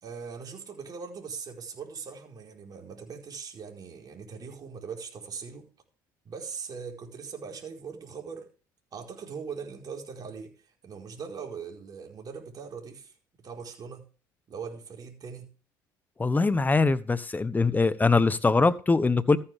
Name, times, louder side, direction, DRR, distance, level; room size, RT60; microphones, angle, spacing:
voice 1, 0.0-5.7 6.2-8.5 8.9-10.5 10.8-13.1 13.4-14.0 14.5-15.5, right 6 dB, 40° right, 4.7 m, -40 dB
voice 2, 16.2-19.4, left 3 dB, 20° left, 1.1 m, -22 dB
14.5 x 10.0 x 3.6 m
supercardioid pair, 85°, 10 cm